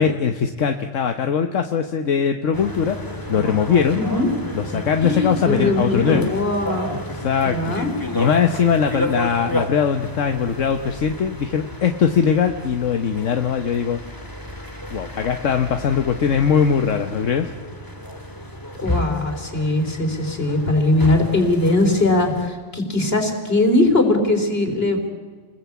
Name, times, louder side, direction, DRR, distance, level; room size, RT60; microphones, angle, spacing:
voice 1, 0.0-4.0 4.5-6.3 7.1-7.7 8.1-14.0 14.9-17.5, left 7 dB, 80° left, 6 dB, 1.4 m, -21 dB
sound 1, 2.5-22.5, equal, 15° left, 2.2 m, -32 dB
voice 2, 4.0-4.3 5.0-6.9 7.4-7.9 18.8-25.0, left 2 dB, 50° left, 5 dB, 4.1 m, -20 dB
30.0 x 20.5 x 8.5 m, 1.5 s
omnidirectional pair, 1.3 m